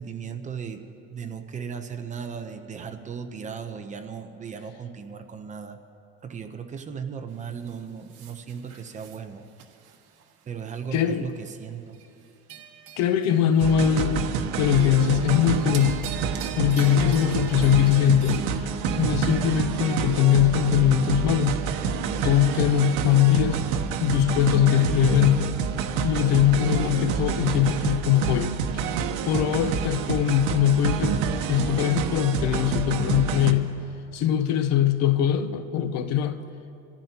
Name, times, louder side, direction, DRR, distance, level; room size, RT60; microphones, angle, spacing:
voice 1, 0.0-5.8 6.2-9.5 10.5-12.0, right 6 dB, 25° right, 0.8 m, -36 dB
sound 1, 7.3-11.0 11.4-11.6 11.9-14.4 14.7-15.2 15.5-18.4, right 9 dB, 55° right, 1.5 m, -43 dB
voice 2, 10.9-11.3 13.0-16.0 16.6-18.7 19.0-21.6 22.2-23.6 24.0-25.5 26.0-28.8 29.3-31.2 31.5-33.7 34.1-36.4, left 10 dB, 60° left, 0.9 m, -21 dB
sound 2, 13.6-33.5, right 6 dB, 70° right, 1.1 m, -28 dB
26.5 x 14.5 x 3.0 m
cardioid pair, 145°, 30 cm